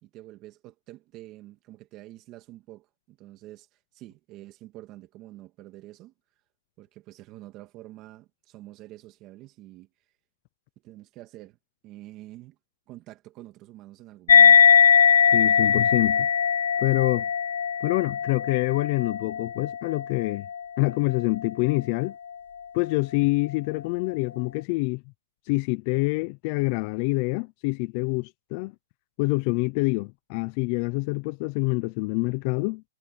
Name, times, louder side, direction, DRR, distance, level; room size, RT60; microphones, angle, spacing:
voice 1, 0.0-3.7 3.9-6.1 6.8-9.9 10.8-11.6 11.8-12.6 12.9-14.6, right 16 dB, 20° right, 2.6 m, -47 dB
sound 1, 14.3-21.2, left 7 dB, 75° left, 0.3 m, -20 dB
voice 2, 15.3-16.3 16.8-17.3 17.8-20.5 20.8-22.1 22.7-25.0 25.5-28.7 29.2-32.8, left 26 dB, 30° left, 0.6 m, -26 dB
hypercardioid pair, 170°, 0 cm